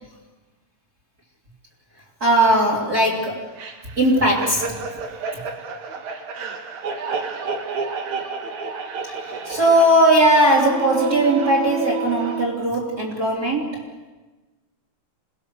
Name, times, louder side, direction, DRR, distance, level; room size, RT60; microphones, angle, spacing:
voice 1, 2.2-3.5 4.0-4.9 9.1-13.8, right 1 dB, 30° right, -3 dB, 3.6 m, -18 dB
sound 1, 3.6-12.5, right 4 dB, 65° right, 3.2 m, -30 dB
28.0 x 20.0 x 7.0 m, 1.2 s
omnidirectional pair, 3.7 m